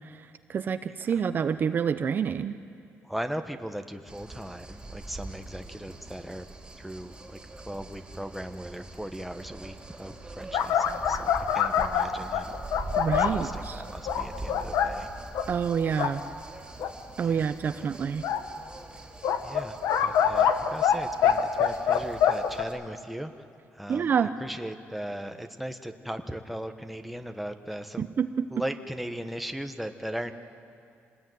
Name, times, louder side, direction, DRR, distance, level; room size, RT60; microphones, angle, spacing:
voice 1, 0.5-2.6 13.0-13.8 15.5-16.2 17.2-18.3 23.9-24.3 28.0-28.5, right 7 dB, 45° right, 10 dB, 0.7 m, -27 dB
voice 2, 3.0-6.4 6.8-12.6 13.1-15.1 17.2-17.5 17.8-17.9 19.4-23.3 23.7-24.1 24.4-28.1 28.5-30.3, equal, ahead, 6 dB, 1.1 m, -38 dB
sound 1, 4.1-22.7, right 2 dB, 15° right, 3.2 m, -43 dB
sound 2, 10.5-13.4 14.1-14.9 15.3-15.5 15.9-16.1 16.8-16.9 18.2-18.4 19.2-21.0 21.2-22.6, left 8 dB, 90° left, 1.3 m, -24 dB
26.0 x 20.0 x 9.3 m, 2.4 s
cardioid pair, 125°, 5 cm